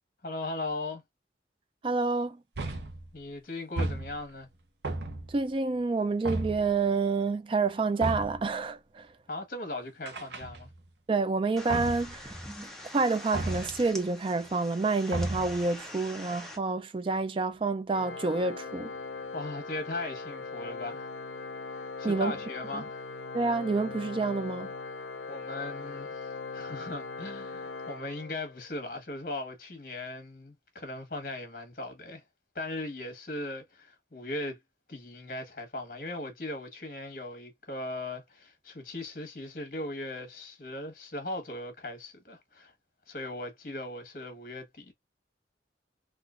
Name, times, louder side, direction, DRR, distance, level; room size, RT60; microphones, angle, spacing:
voice 1, 0.2-1.0 3.1-4.5 9.3-10.7 19.3-21.1 22.0-23.0 25.3-32.2 32.5-34.6 34.9-42.7 43.1-44.9, left 2 dB, 50° left, 1.3 m, -38 dB
voice 2, 1.8-2.4 5.3-9.1 11.1-12.4 12.9-18.9 22.0-22.4 22.7-22.8 23.3-24.7, right 3 dB, 30° right, 0.3 m, -28 dB
sound 1, 2.6-3.1 3.8-4.4 4.8-5.5 6.3-6.8 8.0-8.5 10.1-10.9 11.7-12.2 13.3-13.9 15.1-15.7, right 2 dB, 80° right, 0.7 m, -34 dB
sound 2, 11.6-16.6, left 1 dB, 5° left, 0.7 m, -44 dB
Organ, 17.9-28.7, left 4 dB, 80° left, 0.5 m, -40 dB
3.8 x 2.4 x 2.4 m
head